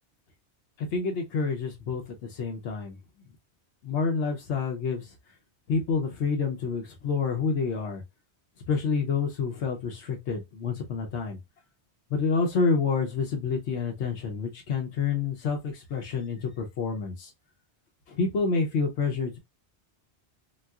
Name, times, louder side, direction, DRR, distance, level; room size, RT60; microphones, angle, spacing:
voice 1, 0.9-2.0 2.3-3.0 3.8-5.1 5.7-8.0 8.7-11.4 12.1-17.3 18.1-19.4, left 5 dB, 90° left, 1.0 m, -28 dB
4.0 x 2.3 x 2.3 m
omnidirectional pair, 1.1 m